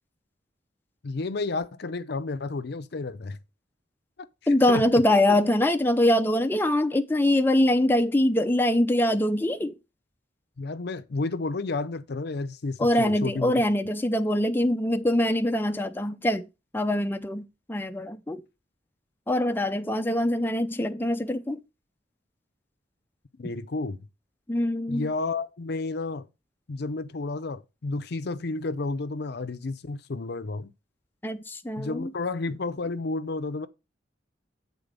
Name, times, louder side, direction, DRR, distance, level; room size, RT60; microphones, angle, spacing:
voice 1, 1.0-3.4 4.4-5.0 10.6-13.6 23.4-24.0 24.9-26.3 26.7-30.7 31.7-33.7, left 3 dB, 60° left, 0.6 m, -31 dB
voice 2, 4.5-9.7 12.8-16.4 16.7-18.4 19.3-21.6 24.5-25.1 31.2-32.1, left 1 dB, 10° left, 0.5 m, -23 dB
8.3 x 4.0 x 5.2 m
head